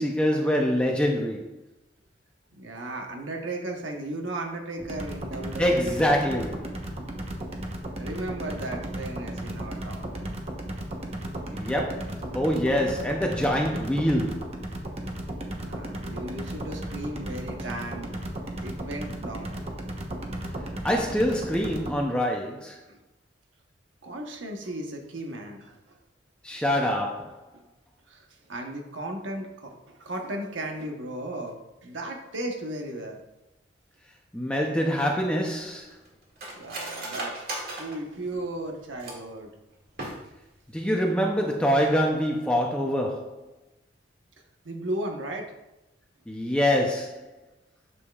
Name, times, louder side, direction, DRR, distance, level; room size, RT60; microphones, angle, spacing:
voice 1, 0.0-1.5 5.6-6.8 11.5-14.6 20.8-22.8 26.4-27.4 34.3-36.0 40.7-43.4 46.3-47.3, equal, 5° left, 0 dB, 0.6 m, -25 dB
voice 2, 2.5-6.1 8.0-10.4 12.3-12.4 15.6-18.1 18.6-19.6 22.9-23.0 24.0-26.0 27.5-27.6 28.1-33.2 36.5-37.4 37.8-39.5 44.6-45.5, right 1 dB, 80° right, 2 dB, 1.1 m, -35 dB
sound 1, 4.8-22.0, right 1 dB, 35° right, 1.0 m, -35 dB
Cutlery silverware, 34.9-39.4 39.9-40.6 40.9-41.0 41.3-41.7 42.0-42.2, right 1 dB, 55° right, 2.0 m, -38 dB
9.8 x 7.0 x 2.4 m, 0.93 s
head